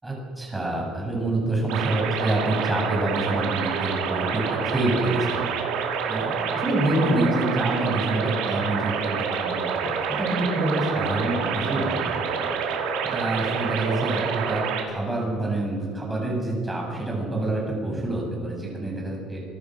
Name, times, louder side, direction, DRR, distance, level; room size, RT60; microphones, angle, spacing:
voice 1, 0.0-5.4 6.1-12.5 13.0-19.4, right 2 dB, 10° right, -1 dB, 7.5 m, -27 dB
sound 1, 1.7-14.8, right 6 dB, 90° right, 4.5 m, -27 dB
27.5 x 24.5 x 6.4 m, 2.1 s
cardioid pair, 165°, 0 cm